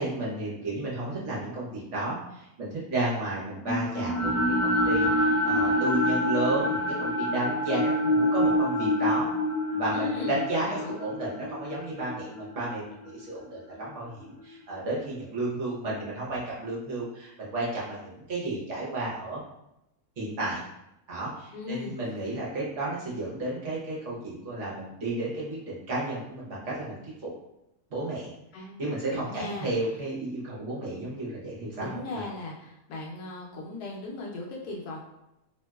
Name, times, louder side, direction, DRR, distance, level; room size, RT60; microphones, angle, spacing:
voice 1, 0.0-9.3 9.7-19.4 20.2-20.6 21.1-27.0 27.9-28.3 28.8-32.2, right 2 dB, 55° right, -6 dB, 1.1 m, -32 dB
sound 1, 3.6-13.8, left 1 dB, 55° left, 0.3 m, -27 dB
voice 2, 9.9-10.4 10.7-11.0 21.5-22.0 28.5-28.8 29.1-29.7 31.8-35.0, left 2 dB, 85° left, -2 dB, 1.2 m, -37 dB
3.0 x 2.8 x 2.3 m, 0.86 s
omnidirectional pair, 1.6 m